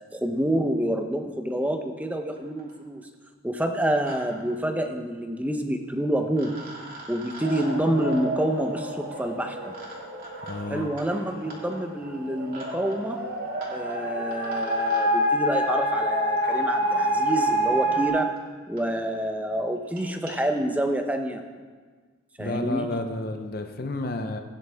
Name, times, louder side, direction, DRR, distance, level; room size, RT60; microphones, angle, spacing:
voice 1, 0.1-3.1 3.4-6.6 7.1-9.7 10.7-13.2 13.7-18.3 18.7-21.4 22.4-22.9, right 1 dB, 10° right, 5 dB, 0.8 m, -27 dB
sound 1, 2.0-2.1 2.4-2.8 3.7-4.2 4.5-4.6 5.8-5.9 6.3-15.1 16.4-16.5 17.3-17.4 18.0-18.1 18.4-18.5 18.8-18.9 19.1-19.3 19.8-20.4, right 1 dB, 45° right, 2.8 m, -45 dB
sound 2, 7.4-18.1, equal, 70° right, 3.6 m, -27 dB
voice 2, 10.4-10.9 22.4-24.4, left 2 dB, 50° left, 6 dB, 0.7 m, -31 dB
16.5 x 9.9 x 3.5 m, 1.5 s
head